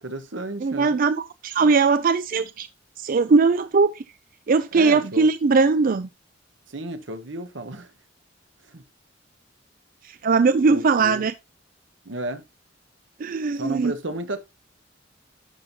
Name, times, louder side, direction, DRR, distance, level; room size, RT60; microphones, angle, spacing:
voice 1, 0.0-1.0 4.7-5.3 6.7-7.9 8.7-8.8 10.7-11.3 12.0-12.4 13.5-14.4, right 1 dB, 80° right, 1.2 m, -33 dB
voice 2, 0.6-2.7 3.0-3.9 4.5-6.1 10.2-11.3 13.2-13.9, right 4 dB, 45° right, 0.4 m, -20 dB
11.5 x 5.4 x 2.8 m
head